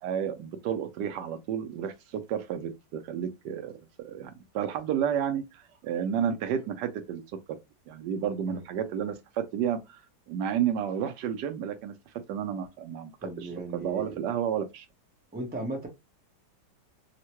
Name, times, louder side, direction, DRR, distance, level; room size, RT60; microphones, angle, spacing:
voice 1, 0.0-3.7 4.0-7.2 7.9-10.0 10.3-14.9, right 8 dB, 75° right, 1.1 m, -31 dB
voice 2, 13.2-14.2 15.3-15.9, right 2 dB, 10° right, 0.5 m, -36 dB
3.6 x 2.1 x 2.8 m
omnidirectional pair, 1.9 m